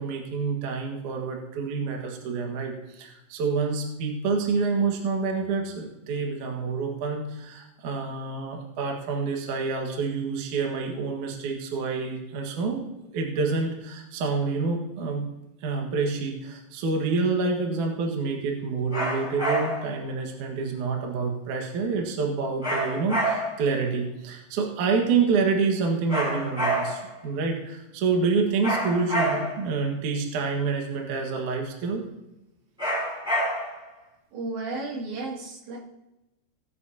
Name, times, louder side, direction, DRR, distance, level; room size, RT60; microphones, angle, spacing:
voice 1, 0.0-12.9 13.1-15.2 15.6-32.0, right 4 dB, 55° right, 1 dB, 2.5 m, -27 dB
sound 1, 18.9-19.9 22.6-23.7 26.1-27.1 28.6-29.7 32.8-33.9, right 1 dB, ahead, 4.2 m, -27 dB
voice 2, 34.3-35.8, right 3 dB, 75° right, -2 dB, 4.7 m, -33 dB
18.0 x 10.5 x 2.9 m, 0.95 s
omnidirectional pair, 5.2 m